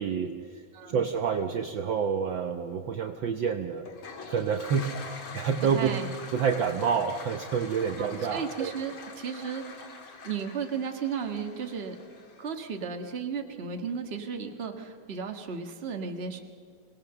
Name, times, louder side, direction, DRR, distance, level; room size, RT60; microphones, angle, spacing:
voice 1, 0.0-0.6 0.9-3.9 4.3-4.9 5.3-5.9 6.3-8.7, right 6 dB, 75° right, 5 dB, 1.1 m, -28 dB
voice 2, 0.7-1.1 5.7-6.1 8.0-9.9 10.2-12.0 12.4-16.4, right 6 dB, 30° right, 4 dB, 1.2 m, -34 dB
Toilet flush, 3.8-12.7, left 4 dB, 45° left, 2.6 m, -45 dB
26.5 x 18.5 x 6.8 m, 2.2 s
omnidirectional pair, 3.4 m